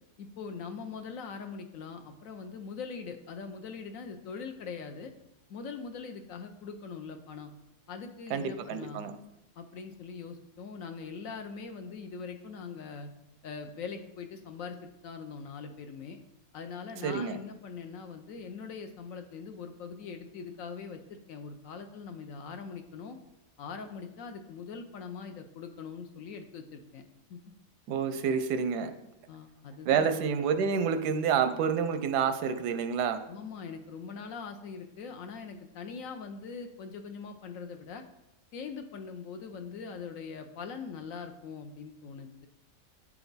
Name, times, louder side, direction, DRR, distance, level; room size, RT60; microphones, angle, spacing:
voice 1, 0.2-5.1 5.5-7.5 7.9-9.1 9.6-13.1 13.4-16.2 16.5-23.2 23.6-27.0 27.3-27.4 29.3-30.1 33.3-38.0 38.5-42.3, left 5 dB, 65° left, 6 dB, 0.9 m, -42 dB
voice 2, 8.3-9.1 17.0-17.4 27.9-28.9 29.9-33.2, right 6 dB, 85° right, 9 dB, 1.2 m, -28 dB
8.6 x 4.6 x 4.0 m, 0.90 s
omnidirectional pair, 1.7 m